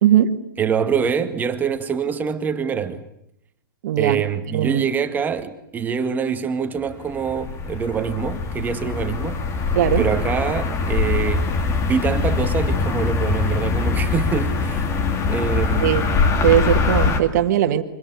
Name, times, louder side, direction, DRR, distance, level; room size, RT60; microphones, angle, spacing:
voice 1, 0.0-0.4 3.8-4.2 4.5-4.9 9.8-10.1 15.8-16.0 16.4-17.8, right 11 dB, 50° right, 2.1 m, -18 dB
voice 2, 0.6-3.0 4.0-9.4 10.0-11.5 11.9-14.9 15.3-16.1, right 6 dB, 15° right, 2.0 m, -25 dB
sound 1, 6.9-17.2, left 4 dB, 25° left, 2.5 m, -22 dB
25.0 x 21.0 x 9.7 m
hypercardioid pair, 125°, 12 cm